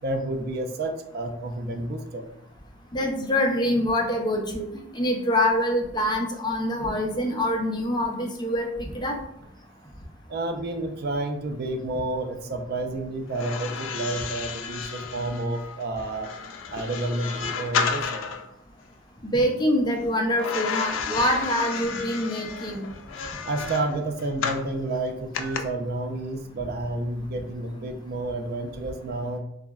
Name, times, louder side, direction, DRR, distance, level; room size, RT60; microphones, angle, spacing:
voice 1, 0.0-2.3 9.7-9.8 10.3-16.3 16.7-18.4 23.5-29.4, right 2 dB, 55° right, 5 dB, 0.3 m, -30 dB
voice 2, 2.9-4.6 4.9-9.2 19.2-22.8, left 1 dB, 25° left, 1 dB, 0.5 m, -25 dB
sound 1, 13.3-18.5 20.4-24.7 25.3-25.6, left 6 dB, 90° left, 0.3 m, -32 dB
3.5 x 2.0 x 2.3 m, 0.81 s
head